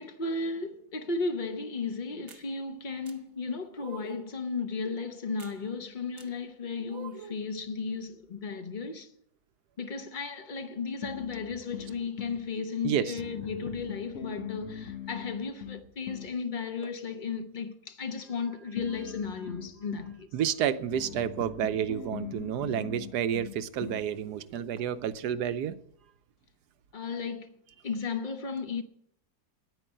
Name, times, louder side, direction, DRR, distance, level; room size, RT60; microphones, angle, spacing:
voice 1, 0.0-9.1 9.8-20.3 26.9-27.5 27.8-28.8, left 4 dB, 40° left, 0.8 m, -35 dB
sound 1, 2.3-2.5 3.1-3.2 3.8-4.3 5.4-5.6 6.2-6.3 6.9-7.4, right 5 dB, 45° right, 0.9 m, -46 dB
sound 2, 11.0-12.4 13.2-16.4 18.8-20.2 20.9-24.1, left 8 dB, 60° left, 1.3 m, -41 dB
voice 2, 12.8-13.2 20.3-25.8, right 9 dB, 85° right, 1.3 m, -30 dB
9.9 x 9.2 x 8.7 m
omnidirectional pair, 1.7 m